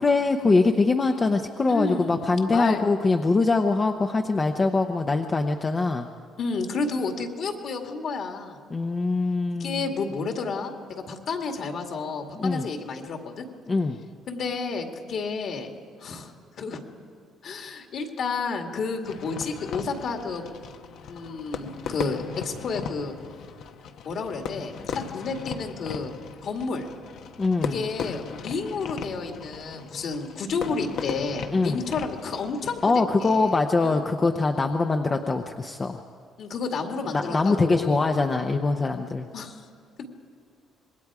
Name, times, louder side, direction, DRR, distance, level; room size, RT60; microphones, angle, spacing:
voice 1, 0.0-6.1 8.7-9.9 12.4-12.7 13.7-14.0 27.4-27.9 31.5-31.8 32.8-36.0 37.1-39.3, left 3 dB, 20° left, 5 dB, 0.7 m, -23 dB
voice 2, 1.7-2.8 6.4-8.6 9.6-13.5 14.3-15.7 16.0-16.8 17.4-20.4 21.1-23.2 24.1-26.1 26.4-26.9 27.6-33.5 33.8-34.0 36.4-38.0 39.3-39.6 40.0-40.1, left 4 dB, 50° left, 3 dB, 2.1 m, -31 dB
Fireworks, 19.0-32.9, left 6 dB, 65° left, 1.1 m, -37 dB
26.0 x 21.0 x 4.9 m, 2.2 s
cardioid pair, 145°, 0 cm